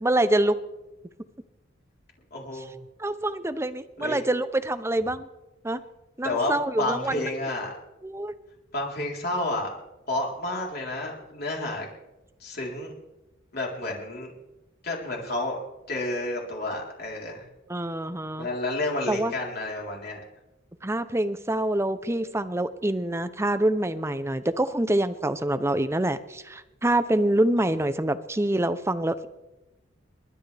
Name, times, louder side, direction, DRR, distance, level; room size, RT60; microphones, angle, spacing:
voice 1, 0.0-0.6 3.0-5.2 5.6-5.8 6.2-7.2 8.0-8.3 17.7-18.5 19.1-19.3 20.8-29.3, right 1 dB, 15° right, 12 dB, 0.6 m, -26 dB
voice 2, 2.3-2.8 4.0-4.2 6.2-7.7 8.7-9.7 10.1-11.9 12.4-12.9 13.5-14.3 14.8-15.6 15.9-17.4 18.4-20.2, left 2 dB, 50° left, -2 dB, 3.9 m, -30 dB
29.0 x 12.0 x 3.4 m, 1.0 s
head